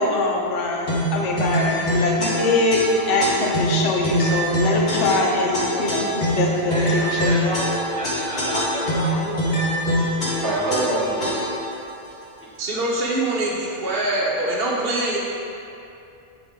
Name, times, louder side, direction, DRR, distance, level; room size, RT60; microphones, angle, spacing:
voice 1, 0.0-7.5, left 2 dB, 70° left, -1 dB, 1.1 m, -23 dB
sound 1, 0.9-11.7, equal, 40° left, 1.1 m, -24 dB
voice 2, 6.7-9.8 10.2-11.3 12.4-12.5, equal, 5° left, -11 dB, 1.1 m, -31 dB
voice 3, 10.4-11.3 12.6-15.2, right 2 dB, 50° right, -5 dB, 0.9 m, -24 dB
9.0 x 3.9 x 3.5 m, 2.7 s
omnidirectional pair, 1.3 m